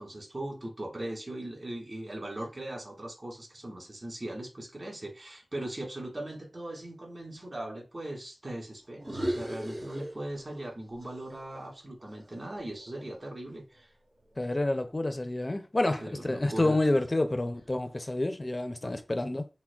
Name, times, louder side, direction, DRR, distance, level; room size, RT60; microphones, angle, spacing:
voice 1, 0.0-13.9 16.0-16.8 18.8-18.9, right 1 dB, 45° right, 1.6 m, -39 dB
sound 1, 9.0-10.7 11.0-13.2, equal, 70° right, 2.2 m, -38 dB
voice 2, 14.4-19.5, left 2 dB, 35° left, 0.4 m, -29 dB
6.0 x 2.1 x 2.3 m
wide cardioid pair, 65°, 0 cm